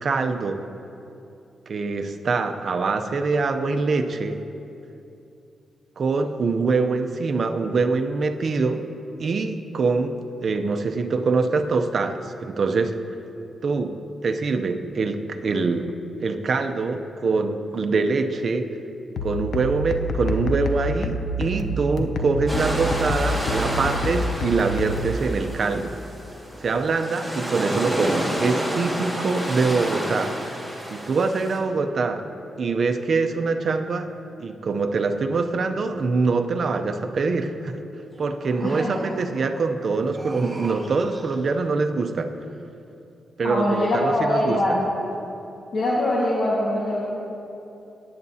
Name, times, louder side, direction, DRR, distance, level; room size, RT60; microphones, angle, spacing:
voice 1, 0.0-0.6 1.7-4.4 6.0-8.8 9.2-10.1 10.4-12.9 13.6-14.0 14.2-15.9 16.2-18.7 19.2-25.9 26.6-30.3 30.9-32.2 32.6-34.1 34.4-37.8 38.2-42.3 43.4-44.6, right 4 dB, 45° right, 6 dB, 0.6 m, -24 dB
sound 1, 19.2-25.2, left 1 dB, 80° left, 0.7 m, -28 dB
sound 2, 22.5-31.6, equal, 5° left, 1.9 m, -30 dB
sound 3, 38.1-39.5 40.0-41.6, right 1 dB, 25° right, 1.9 m, -38 dB
voice 2, 38.6-38.9 43.4-44.8 45.7-47.0, left 1 dB, 50° left, -6 dB, 1.6 m, -23 dB
17.5 x 9.6 x 2.8 m, 2.8 s
wide cardioid pair, 135°, 0 cm